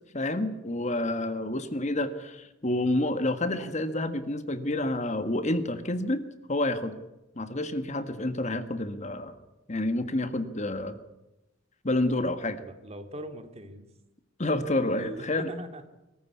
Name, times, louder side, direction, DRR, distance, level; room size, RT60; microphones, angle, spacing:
voice 1, 0.1-6.2 6.5-7.0 7.3-9.3 9.7-11.0 11.8-12.6 14.4-15.5, left 1 dB, 35° left, 10 dB, 1.6 m, -29 dB
voice 2, 12.6-13.9 14.9-15.9, equal, 30° right, 8 dB, 2.2 m, -41 dB
22.5 x 15.0 x 9.6 m, 0.97 s
head